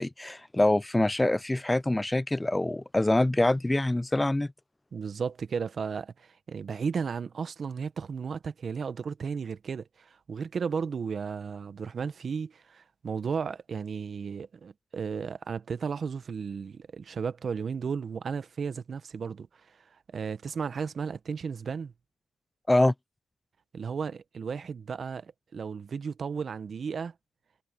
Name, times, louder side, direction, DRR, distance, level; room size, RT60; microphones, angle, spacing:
voice 1, 0.0-4.5 22.7-22.9, left 1 dB, 10° left, 0.5 m, -25 dB
voice 2, 4.9-21.9 23.7-27.1, right 6 dB, 45° right, 1.2 m, -34 dB
cardioid pair, 90°, 0 cm